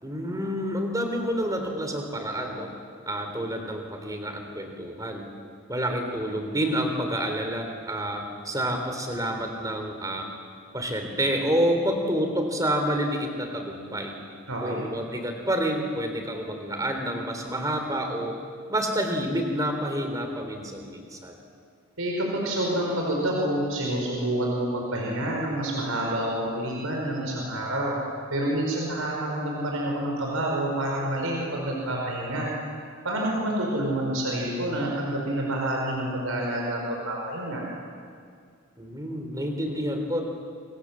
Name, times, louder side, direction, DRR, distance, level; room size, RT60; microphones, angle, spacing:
voice 1, 0.0-2.7 3.1-5.3 5.7-10.3 10.7-14.1 14.6-18.4 18.7-21.4 38.8-40.2, equal, 15° right, 4 dB, 3.4 m, -28 dB
voice 2, 14.5-14.8 22.0-27.9 28.3-32.5 33.0-37.6, right 1 dB, 75° right, -1 dB, 5.1 m, -28 dB
27.0 x 26.0 x 7.5 m, 2.2 s
head